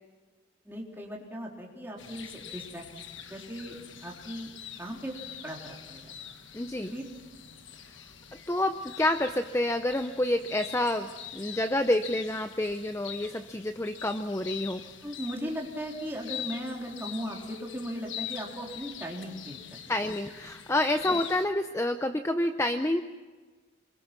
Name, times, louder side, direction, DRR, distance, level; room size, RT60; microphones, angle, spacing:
voice 1, 0.6-2.8 3.3-3.8 4.0-4.5 4.8-5.1 5.4-6.1 6.9-7.0 15.0-19.6 21.1-21.2, equal, 10° right, -2 dB, 3.8 m, -37 dB
sound 1, 2.0-21.5, left 9 dB, 60° left, 1.3 m, -44 dB
voice 2, 6.5-6.9 7.8-7.9 8.5-14.8 19.9-23.0, left 1 dB, 15° left, 8 dB, 0.6 m, -28 dB
27.0 x 22.5 x 6.1 m, 1.4 s
head